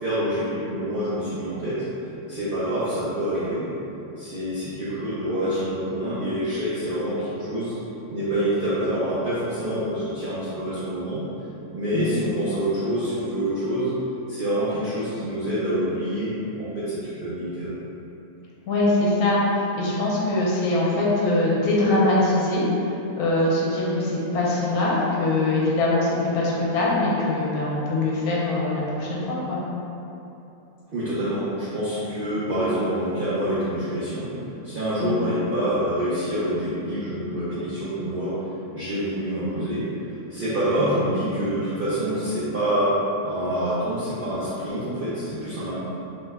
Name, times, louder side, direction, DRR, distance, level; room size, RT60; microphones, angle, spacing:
voice 1, 0.0-1.8 2.3-3.7 4.2-7.7 8.1-11.2 11.7-13.9 14.3-17.7 30.9-34.4 34.6-38.4 38.7-39.9 40.3-42.9 43.2-45.7, right 1 dB, 70° right, -11 dB, 0.5 m, -26 dB
voice 2, 18.7-22.7 23.2-29.6 35.0-35.3 40.8-41.0, left 2 dB, 75° left, -5 dB, 1.1 m, -23 dB
3.0 x 2.1 x 3.3 m, 2.9 s
omnidirectional pair, 1.6 m